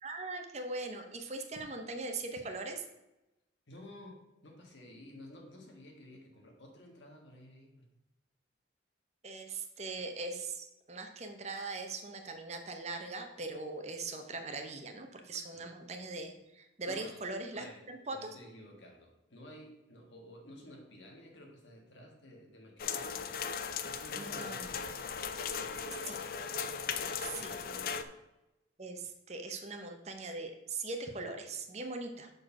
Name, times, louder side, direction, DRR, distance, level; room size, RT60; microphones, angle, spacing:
voice 1, 0.0-2.8 9.2-18.3 24.2-24.8 26.1-26.2 27.4-27.5 28.8-32.3, right 3 dB, 35° right, 5 dB, 0.7 m, -40 dB
voice 2, 3.7-7.9 15.5-15.7 16.9-17.2 17.5-23.3 23.8-25.1 25.4-26.2 27.0-28.1, left 1 dB, 80° left, 2 dB, 1.6 m, -53 dB
sound 1, 22.8-28.0, left 6 dB, 50° left, 0.4 m, -37 dB
6.4 x 4.4 x 5.8 m, 0.96 s
head